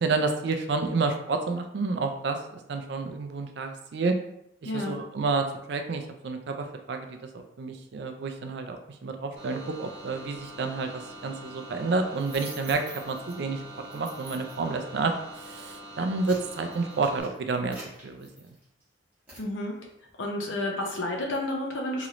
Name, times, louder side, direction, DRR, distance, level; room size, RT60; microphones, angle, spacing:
voice 1, 0.0-2.4 2.7-4.2 4.6-13.6 13.9-17.8 18.0-18.3, right 3 dB, 60° right, 5 dB, 0.4 m, -30 dB
voice 2, 4.6-5.0 19.4-19.7 20.2-22.1, left 1 dB, 75° left, 0 dB, 0.7 m, -30 dB
sound 1, 9.4-17.2, right 1 dB, 30° right, 1.2 m, -44 dB
sound 2, 12.2-13.3 13.9-14.7 15.3-15.5 15.9-18.8 19.3-19.5, right 1 dB, 10° right, 1.2 m, -46 dB
3.0 x 2.9 x 2.5 m, 0.78 s
head